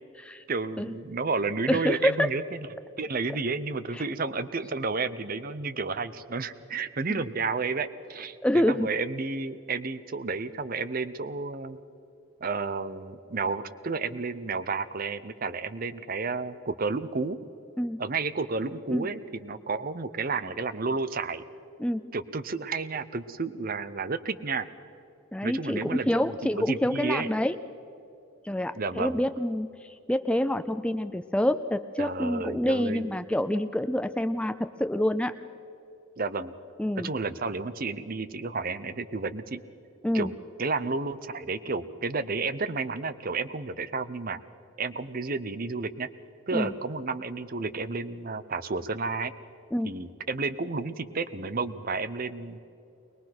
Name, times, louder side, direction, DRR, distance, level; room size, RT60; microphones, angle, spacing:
voice 1, 0.5-2.6 3.0-11.8 12.4-17.4 18.0-21.4 22.1-24.7 25.4-27.3 28.7-29.2 32.0-33.1 36.2-36.5 36.9-39.6 40.1-40.3 40.6-44.4 44.8-46.1 46.5-49.3 49.8-52.6, right 4 dB, 45° right, 14 dB, 0.7 m, -31 dB
voice 2, 1.7-2.3 3.9-4.0 7.1-7.2 8.4-8.9 17.8-18.0 18.9-19.1 21.8-22.0 25.3-27.6 28.4-35.3 36.8-37.1 40.0-40.3 46.5-46.7 49.7-49.9, left 1 dB, 5° left, 11 dB, 0.4 m, -27 dB
22.0 x 21.0 x 6.0 m, 2.8 s
head